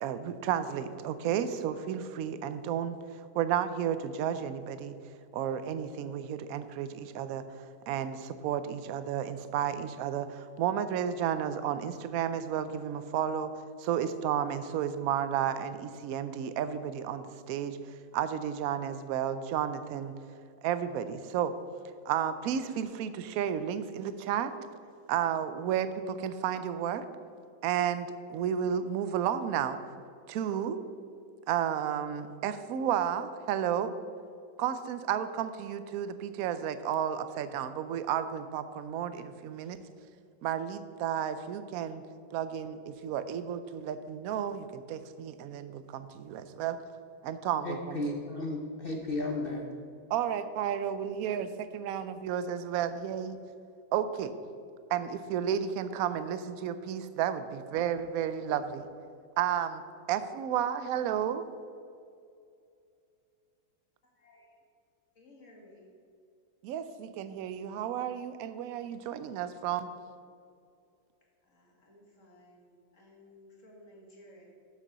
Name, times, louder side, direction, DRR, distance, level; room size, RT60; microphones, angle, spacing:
voice 1, 0.0-3.0 3.3-5.0 5.3-7.4 7.9-13.5 13.8-17.8 18.1-20.1 20.6-21.6 22.1-24.5 25.1-27.0 27.6-29.8 30.3-30.8 31.5-33.9 34.6-39.8 40.4-42.0 42.3-46.8 47.2-48.0 50.1-53.4 53.9-54.3 54.9-58.9 59.4-59.8 60.1-61.4 66.6-69.9, right 9 dB, 70° right, 11 dB, 0.8 m, -32 dB
voice 2, 47.6-49.7, left 2 dB, 65° left, 1 dB, 0.5 m, -34 dB
voice 3, 64.2-64.6 65.2-65.9 71.4-74.4, left 1 dB, 45° left, -2 dB, 2.1 m, -56 dB
7.4 x 6.7 x 6.7 m, 2.4 s
omnidirectional pair, 2.0 m